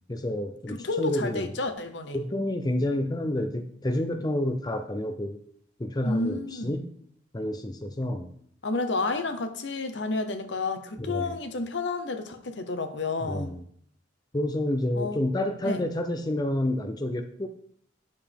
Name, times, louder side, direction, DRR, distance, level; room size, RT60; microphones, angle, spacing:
voice 1, 0.1-1.5 2.1-5.4 5.8-6.9 7.3-8.3 11.0-11.4 13.2-13.6 14.3-17.5, left 1 dB, 20° left, 6 dB, 0.6 m, -29 dB
voice 2, 0.7-2.2 6.0-6.7 8.6-13.5 14.9-15.3 15.6-15.8, left 3 dB, 70° left, 8 dB, 0.9 m, -30 dB
9.5 x 6.8 x 3.5 m, 0.63 s
head